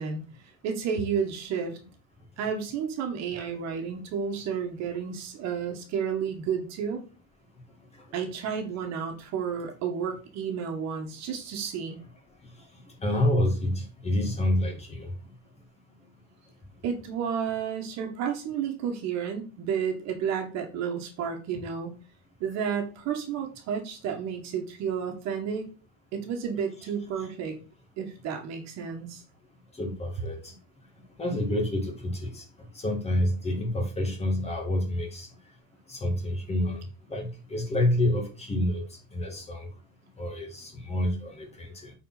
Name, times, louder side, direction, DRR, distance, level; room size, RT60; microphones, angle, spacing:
voice 1, 0.0-1.8 2.4-7.0 8.1-12.0 16.8-21.9 22.4-25.7 26.1-27.6 28.0-29.2, right 7 dB, 45° right, 4 dB, 1.8 m, -31 dB
voice 2, 13.0-15.1 29.7-30.6 31.2-32.4 32.7-35.3 35.9-36.8 37.1-39.7 40.2-41.9, left 1 dB, 15° left, 2 dB, 2.4 m, -28 dB
8.7 x 4.6 x 4.2 m, 0.35 s
supercardioid pair, 115°, 37 cm